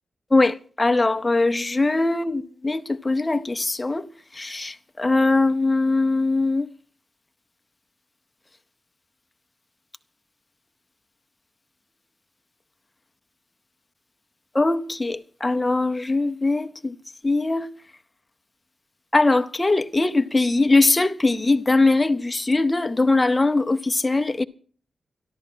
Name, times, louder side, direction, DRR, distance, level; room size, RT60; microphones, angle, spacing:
voice 1, 0.3-4.1 4.4-6.7 14.5-16.9 17.2-17.7 19.1-24.4, left 2 dB, 20° left, 0.6 m, -21 dB
13.0 x 12.0 x 6.1 m
wide cardioid pair, 155°, 0 cm